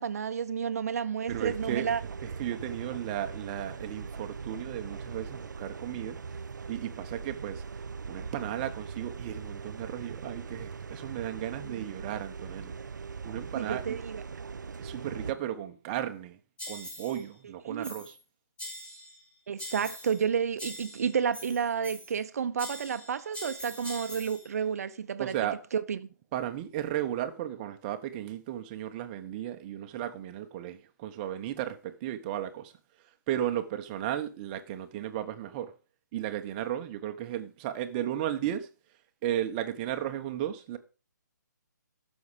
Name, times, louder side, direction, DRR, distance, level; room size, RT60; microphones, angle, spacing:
voice 1, 0.0-2.0 11.6-11.8 13.5-14.2 17.7-17.9 19.5-25.4 25.7-26.1, right 7 dB, 55° right, 0.9 m, -31 dB
voice 2, 1.3-1.9 2.2-6.2 6.7-7.6 8.1-12.7 13.2-14.0 14.8-16.4 16.7-18.2 25.2-25.6 26.3-32.7 33.3-35.7 36.1-38.7 39.2-40.8, right 11 dB, 25° right, 1.1 m, -35 dB
sound 1, 1.3-15.3, right 5 dB, 70° right, 0.6 m, -40 dB
sound 2, 16.6-17.2 17.8-18.2 18.6-19.2 19.6-20.3 20.6-22.2 22.6-24.5, equal, 10° left, 1.7 m, -43 dB
15.0 x 6.5 x 5.1 m
figure-of-eight pair, 140°, 10 cm